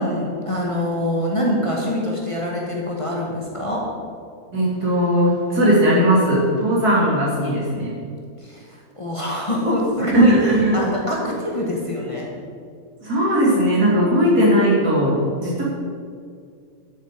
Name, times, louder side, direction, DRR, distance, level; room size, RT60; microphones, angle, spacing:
voice 1, 0.0-3.8 8.4-10.3 10.7-12.3, left 1 dB, 20° left, -3 dB, 1.8 m, -24 dB
voice 2, 4.5-7.9 10.1-10.8 11.2-11.3 13.0-15.6, equal, 80° right, -6 dB, 3.7 m, -18 dB
12.5 x 7.9 x 5.1 m, 2.2 s
omnidirectional pair, 1.6 m